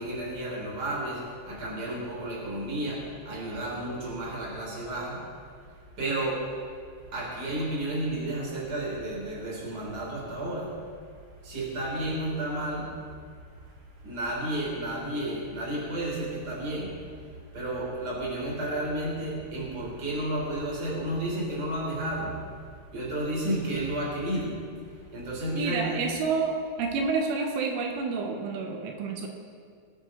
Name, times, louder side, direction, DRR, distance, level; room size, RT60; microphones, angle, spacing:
voice 1, 0.0-5.2 6.0-6.4 7.1-10.7 11.4-12.9 14.0-16.9 17.5-22.3 22.9-24.6 25.1-26.0, right 1 dB, 25° right, -4 dB, 3.3 m, -32 dB
voice 2, 25.6-29.3, right 4 dB, 85° right, 3 dB, 3.4 m, -29 dB
21.5 x 9.2 x 3.8 m, 2.1 s
omnidirectional pair, 5.7 m